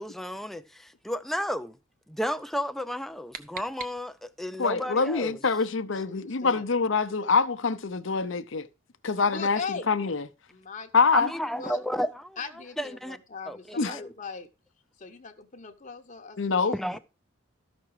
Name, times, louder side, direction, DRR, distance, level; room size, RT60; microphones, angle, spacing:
voice 1, 0.0-1.8 2.1-5.4 11.1-13.2 13.5-14.1 16.7-17.0, equal, ahead, 0.5 m, -33 dB
sound 1, 2.8-4.5, right 6 dB, 40° right, 0.8 m, -44 dB
voice 2, 4.6-8.7 9.0-10.3 10.9-11.3 13.8-14.0 16.4-16.7, left 4 dB, 60° left, 0.7 m, -25 dB
voice 3, 5.9-6.6 9.3-9.9 10.5-10.9 11.6-11.8 12.4-14.5 15.0-17.0, left 5 dB, 40° left, 0.9 m, -39 dB
13.5 x 6.0 x 4.8 m
head